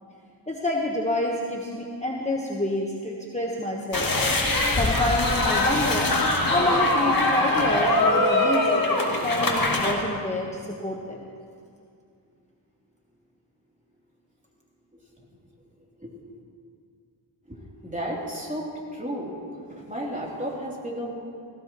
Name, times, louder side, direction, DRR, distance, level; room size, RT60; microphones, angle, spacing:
voice 1, 0.5-4.1 4.8-6.1 6.5-8.7 9.1-11.2, left 1 dB, 15° left, -2 dB, 1.2 m, -28 dB
sound 1, 3.9-9.9, left 2 dB, 50° left, 2.1 m, -22 dB
voice 2, 17.8-19.4 19.7-21.1, equal, 15° right, -4 dB, 3.2 m, -33 dB
17.5 x 17.0 x 3.1 m, 2.3 s
wide cardioid pair, 60°, 45 cm